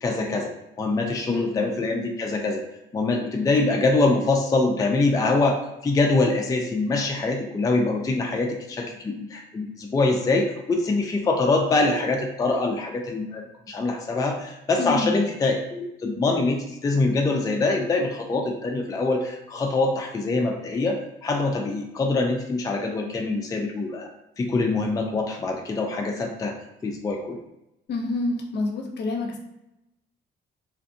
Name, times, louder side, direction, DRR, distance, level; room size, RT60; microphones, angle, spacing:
voice 1, 0.0-0.5 0.8-2.6 2.9-24.1 24.4-26.5 26.8-27.4, left 3 dB, 20° left, 1 dB, 0.3 m, -24 dB
voice 2, 1.3-1.7 14.8-15.2 27.9-29.4, left 2 dB, 60° left, 1 dB, 0.6 m, -27 dB
2.5 x 2.4 x 2.6 m, 0.88 s
cardioid pair, 90°, 20 cm